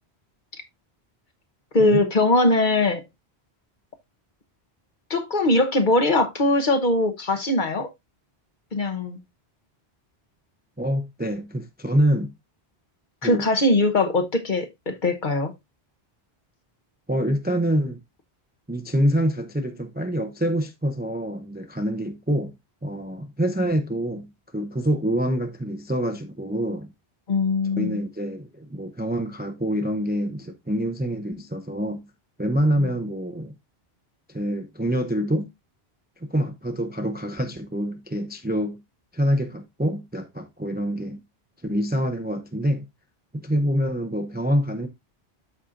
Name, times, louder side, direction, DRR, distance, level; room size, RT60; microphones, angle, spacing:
voice 1, 1.7-3.0 5.1-7.9 8.7-9.2 13.2-15.5 27.3-28.0 32.8-32.9, left 2 dB, 50° left, 1.1 m, -21 dB
voice 2, 10.8-12.3 13.2-13.5 17.1-18.0 18.7-22.5 22.8-26.9 27.8-32.0 32.4-33.5 34.3-35.4 36.3-38.8 39.1-41.2 41.6-42.9 43.3-44.9, equal, 10° right, 0.5 m, -26 dB
12.5 x 4.2 x 2.5 m
omnidirectional pair, 1.1 m